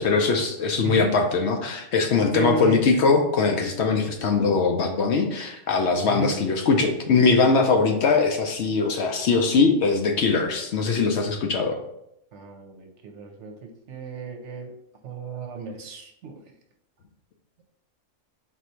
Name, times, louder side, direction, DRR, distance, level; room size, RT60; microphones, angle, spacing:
voice 1, 0.0-11.8, left 4 dB, 65° left, 3 dB, 0.8 m, -21 dB
voice 2, 0.8-1.1 2.3-2.8 6.0-6.4 12.3-14.7 15.0-16.4, right 4 dB, 65° right, 4 dB, 0.9 m, -34 dB
4.2 x 2.7 x 4.4 m, 0.80 s
omnidirectional pair, 1.4 m